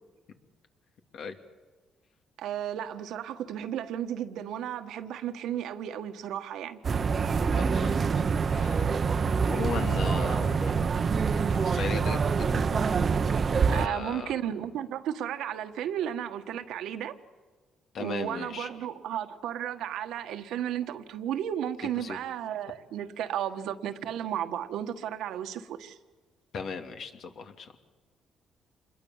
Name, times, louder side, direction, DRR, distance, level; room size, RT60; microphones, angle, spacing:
voice 1, 2.4-6.8 13.7-17.2 18.0-26.0, right 10 dB, 85° right, 1.5 m, -34 dB
sound 1, 6.8-13.9, right 5 dB, 45° right, 0.9 m, -26 dB
voice 2, 7.5-9.2 9.5-10.7 11.5-12.6 13.7-14.3 17.9-18.7 22.0-22.2 26.5-27.7, left 5 dB, 65° left, 2.7 m, -37 dB
27.5 x 21.5 x 7.3 m
cardioid pair, 90°, 0 cm